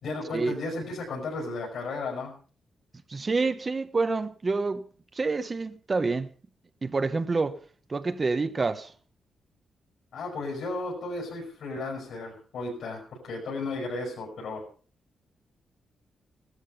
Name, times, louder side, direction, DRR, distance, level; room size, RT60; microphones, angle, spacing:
voice 1, 0.0-2.3 10.1-14.7, left 2 dB, 65° left, 6.6 m, -34 dB
voice 2, 3.1-4.9 5.1-6.3 6.8-7.6 7.9-8.9, right 3 dB, 25° right, 1.0 m, -27 dB
17.5 x 13.5 x 5.6 m
wide cardioid pair, 165°, 0 cm